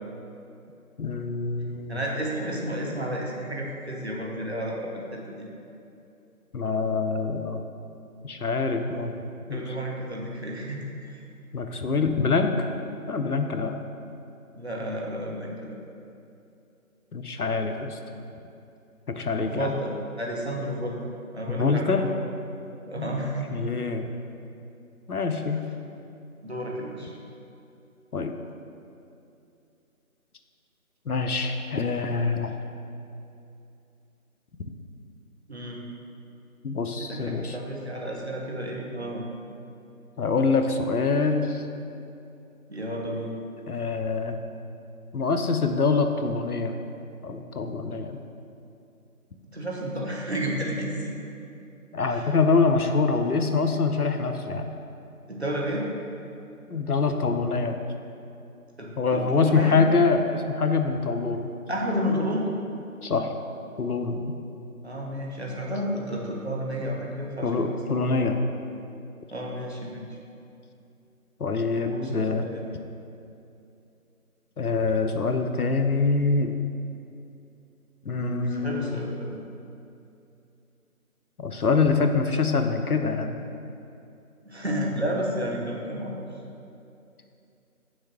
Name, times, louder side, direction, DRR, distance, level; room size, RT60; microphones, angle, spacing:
voice 1, 1.0-2.0 6.5-7.6 8.2-9.6 11.5-12.7 13.1-13.8 17.1-18.0 19.2-19.7 21.5-22.0 23.0-23.1 23.5-24.1 25.1-25.6 28.1-28.3 31.1-32.5 36.6-37.5 40.2-41.6 43.7-44.4 45.1-46.7 47.2-48.2 51.9-54.8 56.7-57.8 59.0-61.5 63.0-63.3 63.8-64.2 67.4-68.4 71.4-72.5 74.6-76.6 78.0-79.0 81.4-83.4, left 4 dB, 80° left, 6 dB, 0.7 m, -25 dB
voice 2, 1.9-5.5 8.9-9.1 9.5-11.2 14.6-15.8 19.4-19.9 20.2-21.0 21.3-22.1 22.9-23.5 26.4-27.2 35.5-35.8 37.0-39.2 42.7-43.3 49.5-51.1 52.1-52.3 55.3-55.8 58.8-59.8 61.7-62.5 64.8-68.1 69.3-70.2 71.8-72.7 78.2-79.4 84.5-86.3, equal, 45° right, -2 dB, 1.0 m, -31 dB
6.4 x 3.5 x 6.0 m, 2.6 s
figure-of-eight pair, 165°, 44 cm